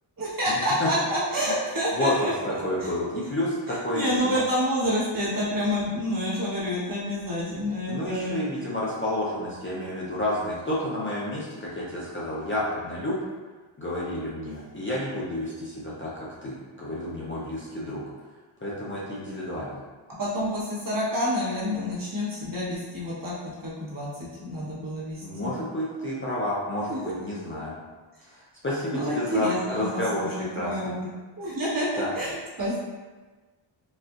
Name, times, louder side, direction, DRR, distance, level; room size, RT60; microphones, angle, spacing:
voice 1, 0.2-2.3 3.9-8.4 20.2-23.3 23.6-24.1 24.4-25.5 26.9-27.1 28.9-30.3 30.6-30.9 31.4-32.8, equal, 40° right, -8 dB, 1.2 m, -28 dB
voice 2, 1.9-2.3 2.6-4.4 7.9-13.2 13.8-18.0 18.6-19.8 25.2-27.8 28.3-30.3 30.5-31.0 32.0-32.1, left 1 dB, 25° left, -7 dB, 0.5 m, -30 dB
4.1 x 2.4 x 2.4 m, 1.3 s
wide cardioid pair, 125°, 50 cm